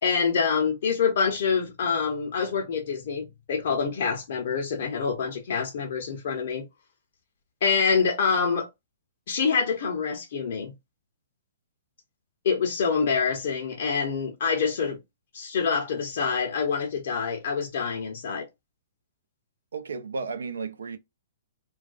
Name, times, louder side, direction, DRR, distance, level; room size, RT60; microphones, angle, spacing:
voice 1, 0.0-6.6 7.6-8.7 9.3-10.7 12.4-15.0 15.3-18.5, left 5 dB, 60° left, 0.7 m, -26 dB
voice 2, 19.7-21.0, right 4 dB, 75° right, 0.5 m, -33 dB
2.3 x 2.2 x 2.4 m
hypercardioid pair, 125°, 0 cm